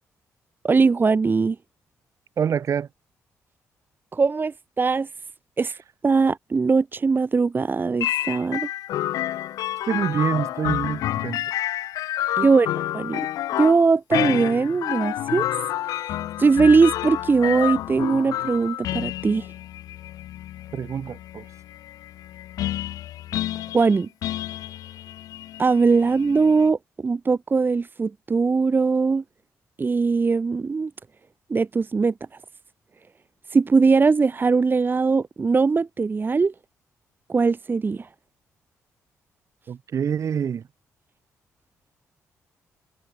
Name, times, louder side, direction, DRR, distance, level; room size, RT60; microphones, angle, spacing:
voice 1, 0.6-1.6 4.1-5.1 5.6-5.8 6.0-8.7 12.4-12.7 12.9-13.2 13.6-15.5 15.9-19.5 23.7-24.1 25.6-29.2 29.8-30.9 31.5-32.1 33.5-36.5 37.3-38.1, right 4 dB, 35° right, 2.4 m, -20 dB
voice 2, 2.4-2.9 9.9-11.5 12.4-12.5 20.7-21.5 39.7-40.6, right 8 dB, 60° right, 4.6 m, -26 dB
sound 1, 8.0-26.7, left 13 dB, 85° left, 1.7 m, -29 dB
cardioid pair, 75°, 6 cm